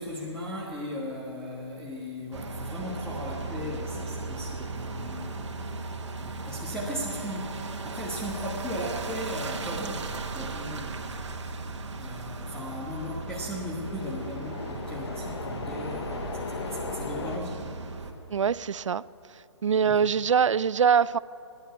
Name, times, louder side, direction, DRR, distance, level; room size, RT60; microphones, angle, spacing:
voice 1, 0.0-5.5 6.2-11.6 12.0-17.8 19.8-20.0, equal, 5° left, 1.5 m, -37 dB
sound 1, 2.3-18.1, right 4 dB, 70° right, 1.5 m, -37 dB
sound 2, 2.8-17.4, left 4 dB, 60° left, 1.3 m, -42 dB
voice 2, 18.3-19.0 19.6-21.2, right 7 dB, 90° right, 0.4 m, -23 dB
14.5 x 11.0 x 8.3 m
hypercardioid pair, 145°, 15 cm